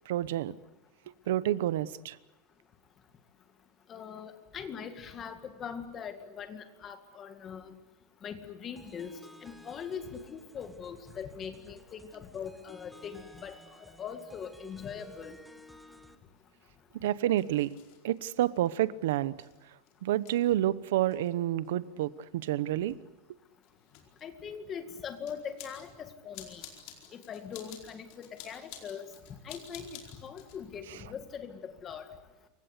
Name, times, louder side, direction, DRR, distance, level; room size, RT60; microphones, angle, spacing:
voice 1, 0.0-0.5 1.3-2.2 16.9-17.8 18.0-19.3 20.0-23.0 30.9-31.0, right 13 dB, 75° right, 17 dB, 0.9 m, -29 dB
voice 2, 3.9-7.8 8.2-9.1 9.4-13.5 14.0-15.4 24.2-26.6 27.1-29.1 29.4-32.1, left 7 dB, 20° left, 9 dB, 2.0 m, -41 dB
sound 1, 8.8-16.1, equal, ahead, 1.5 m, -55 dB
sound 2, 13.5-13.6 14.3-14.5 15.5-30.6, left 10 dB, 45° left, 4.6 m, -53 dB
28.0 x 24.0 x 8.3 m, 0.98 s
supercardioid pair, 180°, 0 cm